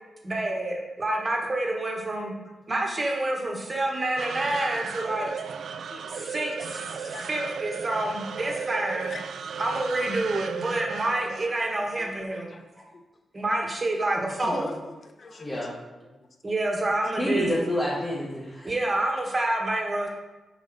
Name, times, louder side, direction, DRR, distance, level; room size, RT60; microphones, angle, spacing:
voice 1, 0.2-2.3 2.7-5.3 6.1-9.1 9.6-12.5 13.3-14.7 16.4-17.6 18.6-20.1, right 2 dB, 30° right, 0 dB, 1.3 m, -28 dB
sound 1, 4.2-12.6, right 6 dB, 80° right, 0.3 m, -36 dB
voice 2, 4.7-5.3 5.7-7.3 9.1-9.2 11.8-12.6 12.9-13.0 14.4-15.7 16.1-16.3, left 3 dB, 50° left, 6 dB, 0.7 m, -43 dB
voice 3, 15.3-15.7 17.2-18.7, left 1 dB, 20° left, -7 dB, 1.5 m, -28 dB
6.9 x 5.1 x 4.0 m, 1.1 s
wide cardioid pair, 115°, 0 cm